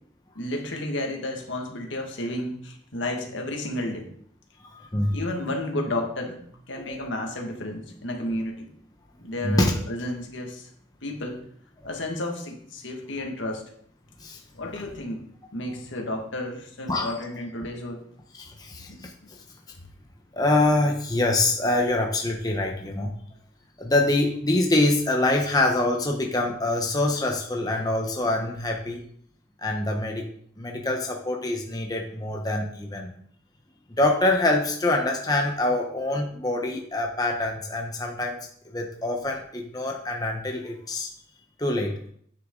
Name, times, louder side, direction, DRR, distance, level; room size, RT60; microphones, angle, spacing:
voice 1, 0.4-4.1 5.1-8.7 9.2-10.7 11.0-11.4 11.8-13.6 14.6-15.2 15.5-18.0 18.9-19.0, left 1 dB, 80° left, 2 dB, 1.8 m, -32 dB
voice 2, 4.7-5.2 6.9-7.0 9.4-9.7 14.2-14.4 16.9-17.1 18.3-19.1 20.3-23.1 23.8-29.0 29.6-30.3 30.6-33.1 34.0-38.4 38.7-41.1 41.6-41.9, left 2 dB, 20° left, 1 dB, 0.9 m, -25 dB
9.4 x 6.7 x 3.8 m, 0.62 s
head